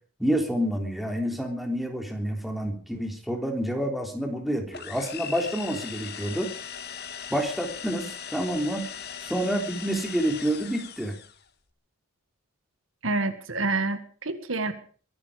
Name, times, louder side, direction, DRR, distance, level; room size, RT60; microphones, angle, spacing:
voice 1, 0.2-6.5 7.3-8.8 9.2-11.1, equal, ahead, 3 dB, 3.4 m, -28 dB
sound 1, 4.7-11.4, left 8 dB, 50° left, 1.9 m, -39 dB
voice 2, 13.0-14.7, right 3 dB, 75° right, 10 dB, 1.9 m, -28 dB
22.5 x 12.5 x 5.0 m, 0.43 s
head